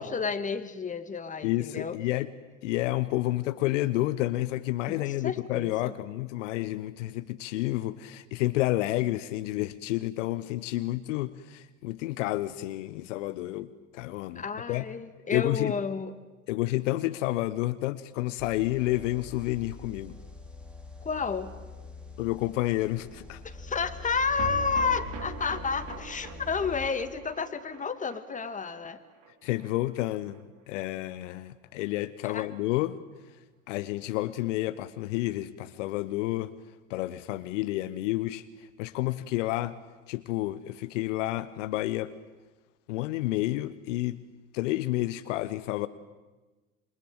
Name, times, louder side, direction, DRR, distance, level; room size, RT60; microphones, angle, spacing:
voice 1, 0.0-2.0 4.9-5.9 14.4-16.2 21.0-21.5 23.4-29.0 32.2-32.5, left 5 dB, 20° left, 9 dB, 2.0 m, -31 dB
voice 2, 1.4-2.3 2.6-14.8 15.3-15.7 16.5-20.2 22.2-23.4 29.4-30.4 30.7-33.0 33.7-36.5 36.9-39.8 40.1-42.1 42.9-44.2 44.5-45.9, left 17 dB, 65° left, 13 dB, 1.1 m, -30 dB
sound 1, 18.4-26.9, left 3 dB, 5° right, 3.4 m, -44 dB
sound 2, 24.4-30.8 31.1-31.2 31.5-31.6, right 6 dB, 50° right, 3.7 m, -43 dB
27.5 x 23.0 x 8.9 m, 1.2 s
hypercardioid pair, 80°, 40 cm